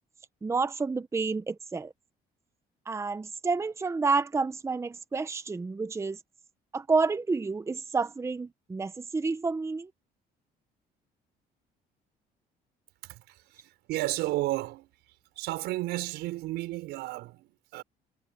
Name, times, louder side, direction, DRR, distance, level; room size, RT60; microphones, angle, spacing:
voice 1, 0.4-1.9 2.9-6.2 6.7-9.9, right 4 dB, 15° right, 0.8 m, -29 dB
voice 2, 13.0-14.9 15.4-17.8, right 17 dB, 90° right, 5.8 m, -33 dB
cardioid pair, 110°, 17 cm